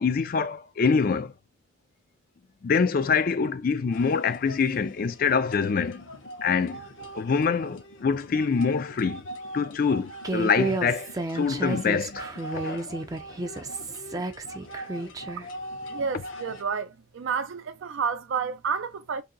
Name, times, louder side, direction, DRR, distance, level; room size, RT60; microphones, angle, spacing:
voice 1, 0.0-1.3 2.6-6.0 6.4-6.8 7.1-9.2 9.5-11.1 11.3-12.3 12.5-12.9, left 5 dB, 45° left, 0.4 m, -25 dB
sound 1, 3.9-16.6, equal, 85° left, 0.9 m, -42 dB
Human voice, 10.2-15.4, right 2 dB, 20° right, 0.4 m, -32 dB
voice 2, 15.9-19.2, right 6 dB, 80° right, 0.4 m, -30 dB
2.7 x 2.7 x 3.8 m
head